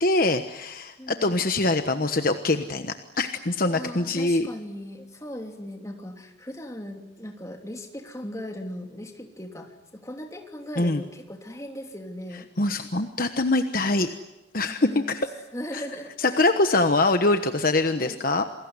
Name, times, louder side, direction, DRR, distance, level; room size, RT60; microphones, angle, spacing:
voice 1, 0.0-4.5 10.8-11.0 12.6-14.1 14.5-15.2 15.7-15.8 16.2-18.4, left 2 dB, 45° left, 7 dB, 1.2 m, -23 dB
voice 2, 1.0-1.4 3.7-9.7 10.0-12.8 14.8-15.2 15.5-16.3 18.0-18.2, equal, 15° left, 3 dB, 3.0 m, -38 dB
28.5 x 21.5 x 9.8 m, 1.0 s
head